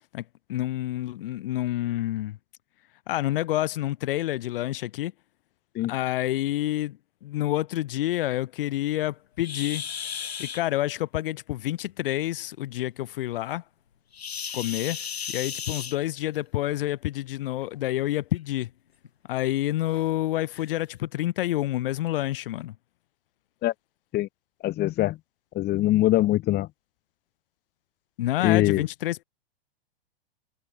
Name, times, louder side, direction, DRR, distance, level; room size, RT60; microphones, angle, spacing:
voice 1, 0.1-2.4 3.1-5.1 5.9-9.8 10.4-13.6 14.5-15.0 15.3-18.7 19.3-22.7 28.2-29.2, left 15 dB, 60° left, 2.7 m, -28 dB
sound 1, 9.4-10.6 14.1-16.4 17.6-17.8 18.4-18.5 19.0-19.1 19.9-20.0 20.5-20.7, left 7 dB, 80° left, 7.2 m, -35 dB
voice 2, 24.6-25.2 25.6-26.7 28.4-28.8, left 15 dB, 30° left, 2.2 m, -22 dB
hypercardioid pair, 115°, 31 cm